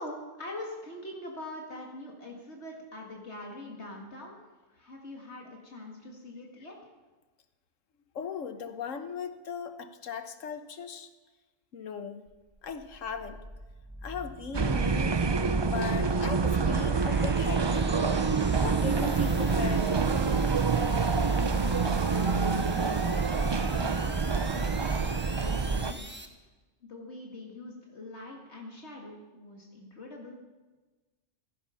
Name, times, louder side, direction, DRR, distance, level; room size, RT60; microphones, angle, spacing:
voice 1, 0.0-4.4 4.7-6.8 21.7-23.2 23.5-25.0 25.3-26.0 26.8-30.4, left 1 dB, 60° left, -1 dB, 2.3 m, -43 dB
voice 2, 8.1-11.1 11.7-12.3 12.6-13.5 14.0-15.4 15.6-17.9 18.6-19.9, left 6 dB, 85° left, 9 dB, 1.5 m, -38 dB
sound 1, 12.3-26.3, right 1 dB, 10° right, 1.1 m, -43 dB
sound 2, 14.5-25.9, right 4 dB, 40° right, 0.3 m, -27 dB
15.5 x 15.0 x 5.7 m, 1.3 s
omnidirectional pair, 1.3 m